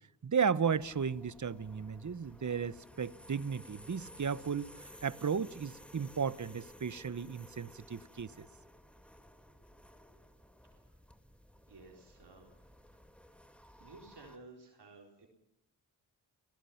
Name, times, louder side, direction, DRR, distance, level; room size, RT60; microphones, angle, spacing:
voice 1, 0.2-4.7 5.0-8.5, right 6 dB, 45° right, 1.0 m, -34 dB
sound 1, 0.7-14.4, equal, 5° left, 2.2 m, -56 dB
voice 2, 11.7-12.5 13.8-15.3, right 3 dB, 70° right, 4.1 m, -54 dB
29.5 x 17.0 x 5.8 m
cardioid pair, 40°, 42 cm